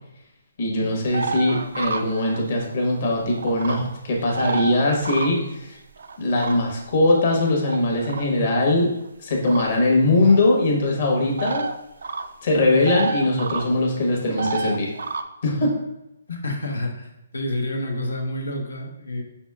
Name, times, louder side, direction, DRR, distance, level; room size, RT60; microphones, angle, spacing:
voice 1, 0.6-5.8 6.2-8.9 9.2-11.7 12.4-14.9 15.4-15.7 16.3-16.4, left 2 dB, 55° left, -1 dB, 1.2 m, -21 dB
sound 1, 1.1-2.7 3.0-3.8 4.2-5.5 6.0-6.9 7.6-8.3 9.5-9.7 10.2-10.4 11.4-11.8 12.0-12.3 12.6-13.7 14.4-15.2, right 4 dB, 70° right, 0.3 m, -29 dB
voice 2, 16.4-19.2, left 1 dB, 90° left, 2 dB, 0.9 m, -28 dB
4.7 x 4.2 x 2.3 m, 0.92 s
hypercardioid pair, 150°, 0 cm